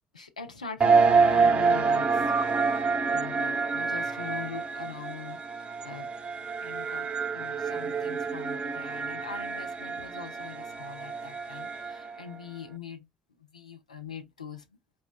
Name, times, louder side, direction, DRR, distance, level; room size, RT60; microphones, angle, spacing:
voice 1, 0.1-2.3 3.1-6.1 6.6-7.1 7.3-13.1 13.4-14.6, left 6 dB, 90° left, 0.4 m, -42 dB
sound 1, 0.8-12.2, right 5 dB, 30° right, 0.6 m, -27 dB
4.2 x 2.1 x 2.3 m
figure-of-eight pair, 50°, 4 cm